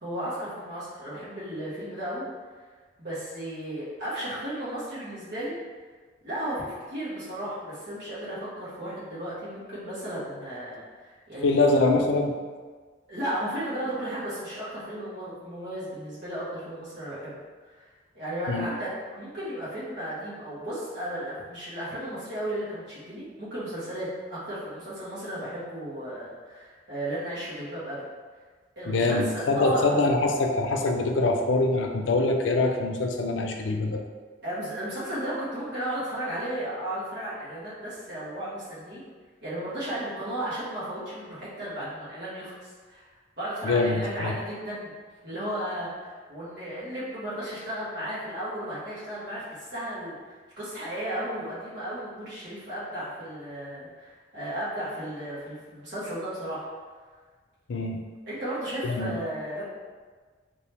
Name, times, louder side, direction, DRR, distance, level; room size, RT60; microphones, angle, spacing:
voice 1, 0.0-2.2 2.6-2.7 3.0-5.6 6.2-11.6 13.1-17.8 18.1-28.0 28.7-30.0 34.4-39.0 39.4-43.0 43.4-44.9 45.2-56.7 58.3-59.6, right 1 dB, 55° right, -10 dB, 1.5 m, -34 dB
voice 2, 11.4-12.3 18.5-18.7 28.9-34.0 43.6-44.3 57.7-58.0 58.8-59.1, left 2 dB, 80° left, 3 dB, 0.4 m, -24 dB
3.0 x 2.9 x 3.3 m, 1.5 s
head